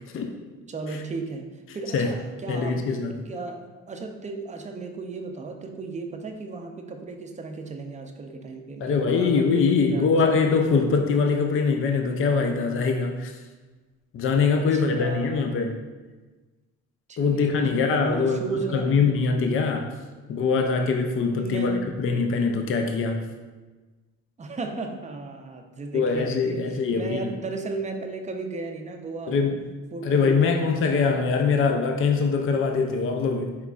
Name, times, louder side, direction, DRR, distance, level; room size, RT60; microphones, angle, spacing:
voice 1, 0.7-2.8 3.1-3.6 3.9-10.2 14.5-15.6 17.1-19.0 21.3-21.8 24.4-26.6 26.9-29.4 29.9-30.7, right 3 dB, 25° right, 4 dB, 0.5 m, -35 dB
voice 2, 2.5-3.3 8.8-13.4 14.1-15.8 17.2-19.9 20.3-23.3 25.9-27.3 29.3-29.6 30.0-33.6, left 5 dB, 45° left, 4 dB, 0.5 m, -23 dB
4.3 x 3.6 x 2.4 m, 1.3 s
cardioid pair, 90°, 30 cm